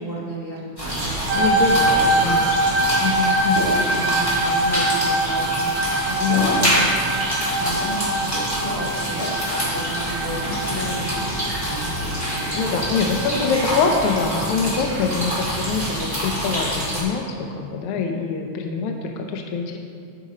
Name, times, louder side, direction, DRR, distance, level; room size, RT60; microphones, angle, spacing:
voice 1, 0.0-1.7 2.0-2.5 3.1-3.5 3.8-6.7 7.5-13.0 13.3-13.8, right 1 dB, 50° left, -8 dB, 0.7 m, -33 dB
sound 1, 0.8-17.0, equal, 10° left, 1.1 m, -26 dB
voice 2, 1.3-3.7 6.2-6.9 12.6-17.2 17.6-19.8, left 5 dB, 85° left, 3 dB, 1.2 m, -24 dB
sound 2, 1.3-14.7, right 1 dB, 80° right, 2.3 m, -24 dB
10.5 x 4.9 x 4.1 m, 2.4 s
omnidirectional pair, 3.4 m